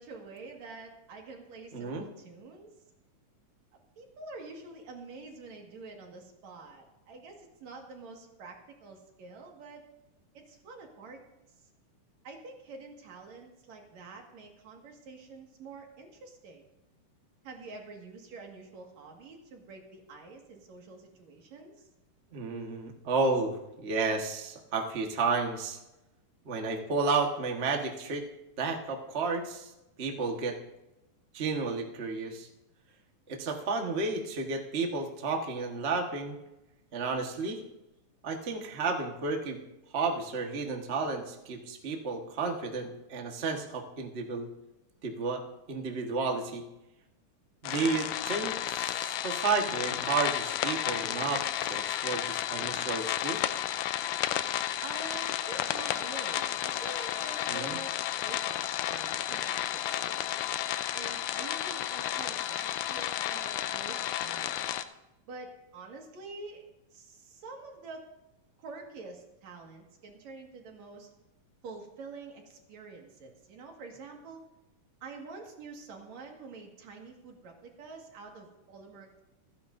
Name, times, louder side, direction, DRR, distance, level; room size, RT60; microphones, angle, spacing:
voice 1, 0.0-2.7 4.0-9.9 10.3-11.2 12.2-16.6 17.4-21.9 54.8-60.5 60.9-64.6 65.3-66.6 66.9-68.1 68.6-71.1 71.6-74.4 75.0-79.2, right 3 dB, 60° right, 2 dB, 3.0 m, -47 dB
voice 2, 1.7-2.0 22.3-25.8 26.4-28.2 28.6-29.7 30.0-30.6 31.3-32.5 33.3-36.4 36.9-37.6 38.2-39.6 39.9-44.5 45.0-45.4 45.7-46.6 47.6-53.5 57.5-57.8, right 4 dB, 80° right, 2 dB, 0.6 m, -32 dB
sound 1, 47.6-64.8, left 12 dB, 80° left, 2.1 m, -32 dB
27.5 x 10.0 x 2.6 m, 0.93 s
omnidirectional pair, 3.8 m